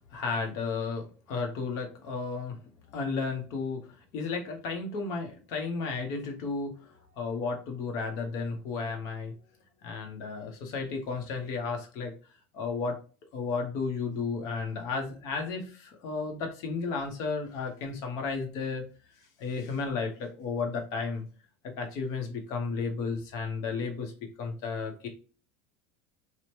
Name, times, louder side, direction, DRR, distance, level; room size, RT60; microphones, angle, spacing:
voice 1, 0.0-2.6 2.9-3.9 4.1-9.3 9.8-12.1 12.5-13.0 13.3-18.8 19.4-21.3 21.6-24.1 24.4-25.1, left 4 dB, 55° left, 4 dB, 0.8 m, -33 dB
2.8 x 2.1 x 3.0 m, 0.37 s
supercardioid pair, 125°, 7 cm